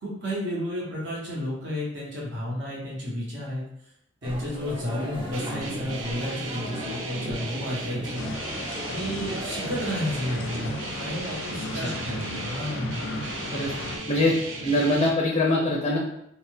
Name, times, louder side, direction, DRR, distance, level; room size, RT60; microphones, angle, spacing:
voice 1, 0.0-3.6 4.2-8.2 8.8-13.1, equal, 60° right, -5 dB, 1.0 m, -32 dB
sound 1, 4.2-10.7, left 1 dB, 25° right, 0.5 m, -37 dB
sound 2, 5.3-15.1, right 2 dB, 80° right, 0.5 m, -35 dB
sound 3, 8.1-14.0, left 3 dB, 90° left, 0.5 m, -37 dB
voice 2, 14.6-16.0, left 1 dB, 30° left, -3 dB, 0.4 m, -23 dB
2.8 x 2.1 x 3.4 m, 0.76 s
head